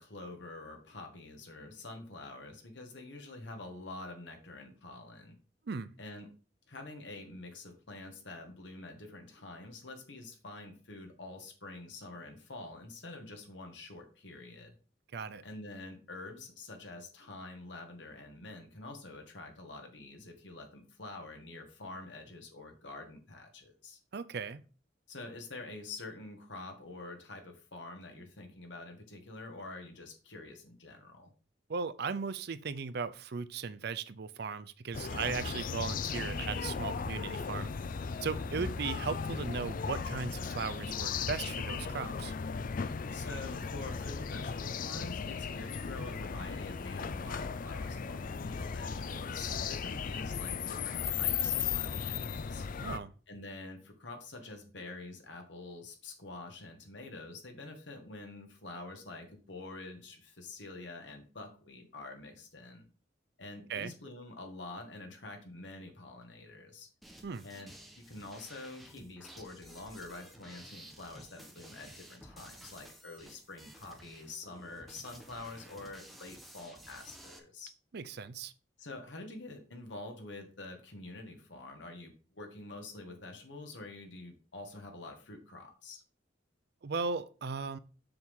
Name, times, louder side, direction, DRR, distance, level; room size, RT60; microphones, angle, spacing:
voice 1, 0.0-5.4 6.0-6.3 6.7-14.7 15.4-24.0 25.1-31.3 38.4-38.7 43.1-52.7 53.3-62.9 63.4-66.9 67.4-77.7 78.8-86.0, left 2 dB, 80° left, 1.8 m, -47 dB
voice 2, 15.1-15.4 24.1-24.6 31.7-37.7 38.2-42.3 52.8-53.1 63.7-63.9 67.2-67.4 77.9-78.5 86.8-87.8, right 5 dB, 60° right, 0.5 m, -37 dB
sound 1, 34.9-53.0, left 6 dB, 50° left, 0.4 m, -36 dB
sound 2, 67.0-77.4, right 1 dB, ahead, 1.1 m, -53 dB
6.9 x 6.2 x 3.6 m
head